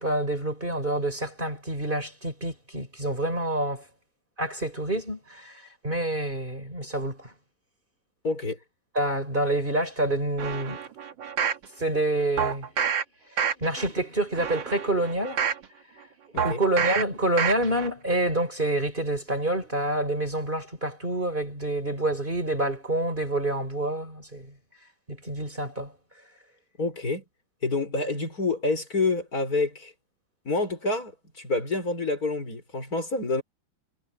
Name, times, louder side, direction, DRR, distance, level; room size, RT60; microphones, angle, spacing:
voice 1, 0.0-3.9 4.4-7.3 8.9-10.8 11.8-12.7 13.3-15.5 16.4-24.5 25.1-25.9, right 1 dB, 25° right, 4.9 m, -27 dB
voice 2, 8.2-8.6 16.3-16.6 26.8-27.2 27.6-29.9 30.5-33.4, left 3 dB, 50° left, 5.7 m, -28 dB
sound 1, 10.4-11.6 12.4-13.0 13.4-13.9 14.3-15.6 16.4-17.0 17.4-17.9 18.3-18.4, right 7 dB, 75° right, 2.3 m, -28 dB
omnidirectional pair, 2.1 m